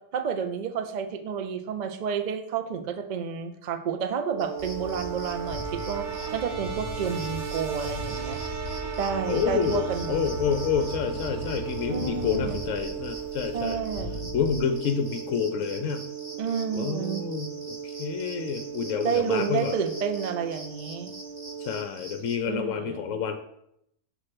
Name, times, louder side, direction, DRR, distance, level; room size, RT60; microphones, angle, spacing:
voice 1, 0.1-6.1 6.3-8.4 9.0-10.2 11.9-12.6 13.5-14.3 16.4-17.2 19.0-21.1 22.5-23.0, right 7 dB, 80° right, 7 dB, 0.4 m, -30 dB
sound 1, 4.2-21.8, right 8 dB, 55° right, 1.2 m, -37 dB
sound 2, 4.4-22.4, right 1 dB, 25° right, 0.9 m, -46 dB
Train, 4.6-14.6, left 1 dB, 40° left, 1.2 m, -38 dB
voice 2, 9.3-13.8 14.3-16.1 16.8-19.8 21.6-23.4, left 7 dB, 65° left, 7 dB, 0.9 m, -28 dB
6.7 x 3.3 x 5.8 m, 0.76 s
omnidirectional pair, 1.6 m